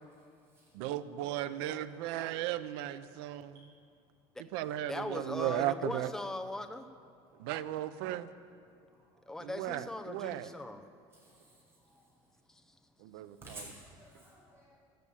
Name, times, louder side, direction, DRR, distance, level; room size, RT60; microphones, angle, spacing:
voice 1, 0.7-3.7 4.5-6.1 7.4-8.3 9.4-10.5 13.0-13.7, right 13 dB, 90° right, 13 dB, 0.7 m, -36 dB
voice 2, 4.9-6.9 9.3-10.9 12.5-12.6, left 2 dB, 5° left, 6 dB, 0.6 m, -39 dB
voice 3, 13.4-14.8, right 2 dB, 20° right, -4 dB, 4.9 m, -51 dB
12.5 x 12.0 x 8.5 m, 2.3 s
cardioid pair, 180°, 12 cm